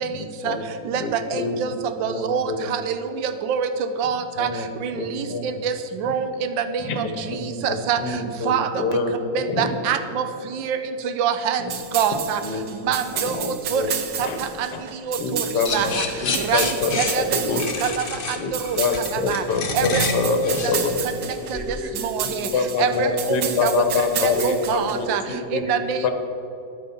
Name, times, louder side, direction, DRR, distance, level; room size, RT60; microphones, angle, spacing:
voice 1, 0.0-1.5 2.0-2.7 4.4-4.6 4.9-5.5 6.8-7.6 8.0-9.7 11.6-11.7 12.4-12.9 13.2-13.9 14.2-14.4 14.7-14.8 15.2-17.6 18.4-18.5 18.8-21.0 22.5-25.1 25.5-25.6 26.0-26.1, left 4 dB, 65° left, 6 dB, 1.6 m, -26 dB
voice 2, 0.9-1.7 2.0-2.4 2.7-2.9 3.2-3.7 4.0-4.5 4.8-5.2 5.6-5.7 6.0-6.6 7.0-7.1 7.6-8.0 8.5-8.8 9.3-10.2 10.6-10.8 11.2-11.6 11.9-12.4 12.9-13.4 13.7-13.8 14.2-14.3 14.6-14.7 15.1-15.2 15.7-15.9 16.5-16.6 17.0-17.2 17.8-18.0 18.7-18.8 19.3-19.4 19.7-20.4 22.0-22.5 22.8-23.7 24.4-25.2 25.5-26.0, right 8 dB, 90° right, 9 dB, 1.4 m, -24 dB
sound 1, 11.7-25.2, right 8 dB, 65° right, 1.4 m, -31 dB
sound 2, 15.6-21.8, left 4 dB, 45° left, 0.7 m, -29 dB
voice 3, 21.2-24.6 25.1-26.1, equal, 40° right, 4 dB, 1.1 m, -37 dB
11.0 x 9.1 x 5.8 m, 2.8 s
omnidirectional pair, 2.0 m